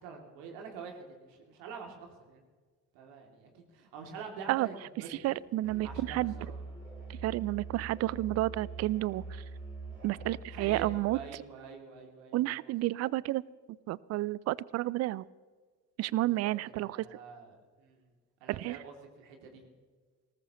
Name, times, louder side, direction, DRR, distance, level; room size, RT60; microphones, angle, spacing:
voice 1, 0.0-2.4 2.9-5.4 5.8-6.6 10.5-12.7 16.2-18.1 18.4-19.7, right 5 dB, 60° right, 2 dB, 2.8 m, -47 dB
voice 2, 5.1-6.3 7.2-9.4 10.0-11.2 12.3-13.4 13.9-15.2 16.0-17.1 18.5-18.8, right 17 dB, 35° right, 23 dB, 0.4 m, -31 dB
Musical instrument, 5.6-11.2, right 3 dB, 85° right, 3.7 m, -44 dB
22.0 x 19.0 x 3.0 m, 1.5 s
figure-of-eight pair, 55°, 49 cm